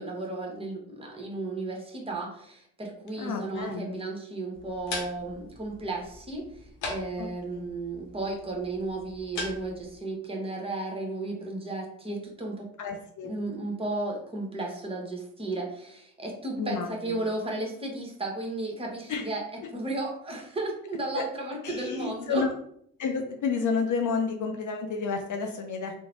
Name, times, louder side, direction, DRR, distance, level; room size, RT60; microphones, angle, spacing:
voice 1, 0.0-12.7 13.2-19.4 19.7-22.4, right 2 dB, 15° right, 0 dB, 0.9 m, -34 dB
voice 2, 3.1-4.0 7.2-7.7 12.8-13.3 16.6-17.2 19.1-19.2 21.1-21.2 21.6-22.5 23.0-25.9, left 5 dB, 45° left, 3 dB, 0.4 m, -30 dB
sound 1, 4.5-10.0, left 2 dB, 75° left, 0.8 m, -41 dB
3.0 x 2.1 x 2.5 m, 0.68 s
hypercardioid pair, 45°, 44 cm